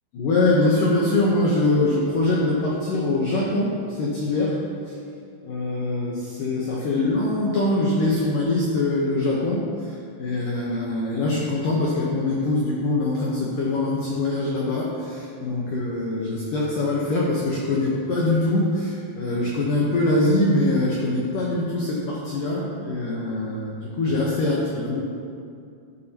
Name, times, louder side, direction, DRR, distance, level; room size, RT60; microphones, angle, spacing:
voice 1, 0.1-4.6 4.9-5.0 5.4-25.0, left 2 dB, 75° left, -4 dB, 1.9 m, -23 dB
13.0 x 11.5 x 3.0 m, 2.4 s
omnidirectional pair, 5.5 m